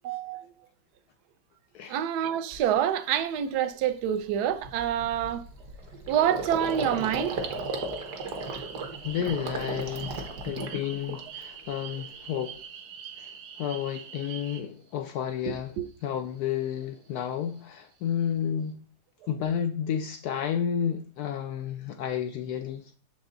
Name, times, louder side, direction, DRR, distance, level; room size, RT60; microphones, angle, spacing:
voice 1, 0.0-0.5 1.9-5.4 6.1-7.4 15.8-15.9, right 10 dB, 70° right, 1.0 m, -27 dB
Gurgling, 1.9-2.0 2.5-2.8 3.1-3.3 3.6-11.6 11.9-12.6, right 3 dB, 55° right, 1.5 m, -36 dB
sound 1, 6.6-14.6, right 8 dB, 90° right, 1.8 m, -44 dB
voice 2, 9.0-12.6 13.2-13.3 13.6-18.8 19.3-22.9, left 9 dB, 90° left, 0.8 m, -31 dB
7.0 x 5.4 x 3.8 m
omnidirectional pair, 2.2 m